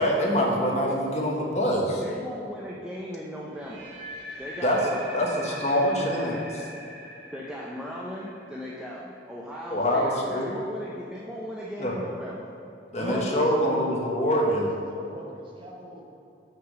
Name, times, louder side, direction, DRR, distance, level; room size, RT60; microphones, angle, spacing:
voice 1, 0.0-2.0 4.6-4.8 5.1-6.4 9.7-10.5 11.8-11.9 12.9-14.7, equal, 40° left, -1 dB, 1.1 m, -24 dB
voice 2, 2.0-3.9 4.4-6.4 7.3-12.5, equal, 5° right, -5 dB, 0.6 m, -37 dB
sound 1, 3.5-9.5, right 1 dB, 80° right, 2.0 m, -42 dB
voice 3, 13.0-14.0 14.5-16.1, equal, 30° right, -2 dB, 1.1 m, -38 dB
5.9 x 5.7 x 6.5 m, 2.8 s
head